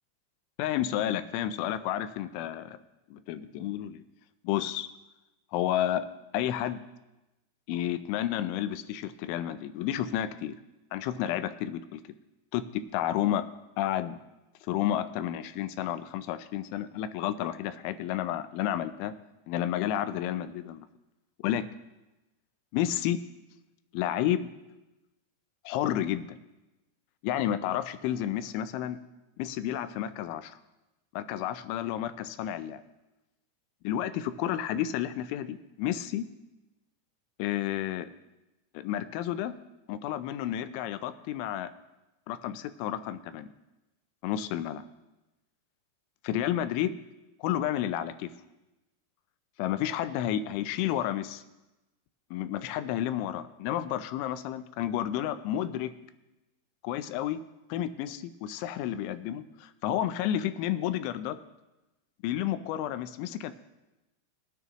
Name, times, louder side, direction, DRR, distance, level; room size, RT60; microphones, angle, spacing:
voice 1, 0.6-2.8 3.1-4.0 4.4-4.9 5.5-6.1 6.3-6.8 7.7-10.6 10.9-12.0 12.5-13.4 13.8-14.2 14.7-19.1 19.5-20.9 21.4-21.7 22.7-23.2 23.9-24.5 25.7-26.3 27.2-29.0 29.4-30.5 31.1-32.8 33.8-36.2 37.4-38.1 38.7-39.5 39.9-41.7 42.3-43.5 44.2-44.8 46.2-47.0 47.4-48.3 49.6-51.4 52.3-55.9 56.8-57.4 57.7-61.4 62.2-63.5, left 11 dB, 90° left, 12 dB, 3.1 m, -31 dB
20.5 x 9.6 x 3.0 m, 1.0 s
omnidirectional pair, 5.3 m